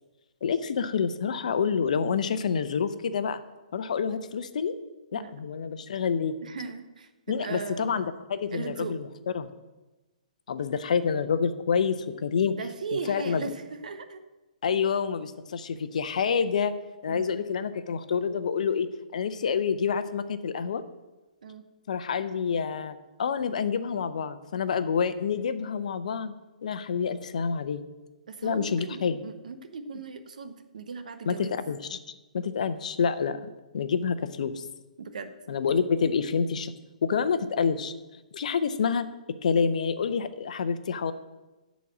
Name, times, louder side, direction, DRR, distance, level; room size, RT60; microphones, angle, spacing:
voice 1, 0.4-3.4 3.7-4.7 5.1-6.3 7.3-9.1 9.3-9.5 10.5-12.6 13.1-13.5 14.6-16.7 17.0-18.9 19.1-20.8 21.9-26.3 26.6-27.8 28.4-29.2 31.3-32.0 32.3-33.4 33.7-34.6 35.5-36.7 37.0-37.9 38.3-39.1 39.4-41.1, left 6 dB, 65° left, 12 dB, 0.7 m, -27 dB
voice 2, 6.4-8.0 8.5-9.0 12.5-14.2 17.1-17.4 21.4-21.6 28.3-31.6 35.0-35.3, right 4 dB, 70° right, 9 dB, 1.0 m, -38 dB
11.0 x 4.1 x 7.2 m, 1.1 s
hypercardioid pair, 135°, 4 cm